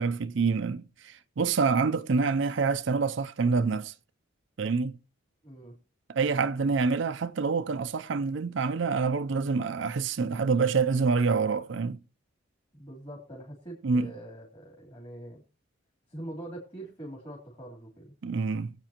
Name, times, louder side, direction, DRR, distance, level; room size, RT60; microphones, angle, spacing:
voice 1, 0.0-3.9 4.6-5.0 6.1-12.0 13.8-14.1 18.2-18.7, right 4 dB, 65° right, 0.5 m, -27 dB
voice 2, 5.4-5.8 12.7-15.4 16.1-18.1, right 1 dB, 30° left, 3.3 m, -43 dB
22.0 x 8.1 x 2.9 m
head